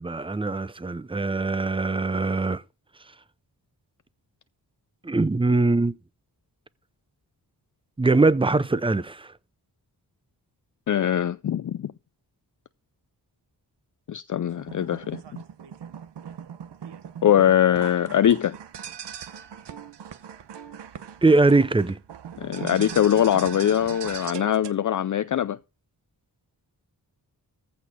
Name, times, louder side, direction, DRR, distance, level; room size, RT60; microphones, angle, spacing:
voice 1, 0.0-2.6 5.0-5.9 8.0-9.3 21.2-22.0, right 3 dB, 15° right, 0.5 m, -22 dB
voice 2, 10.9-11.9 14.1-15.2 17.2-18.6 22.4-25.6, left 10 dB, 50° left, 0.4 m, -22 dB
sound 1, 14.5-24.7, right 8 dB, 85° right, 0.9 m, -39 dB
14.5 x 4.9 x 5.2 m
wide cardioid pair, 75°, 40 cm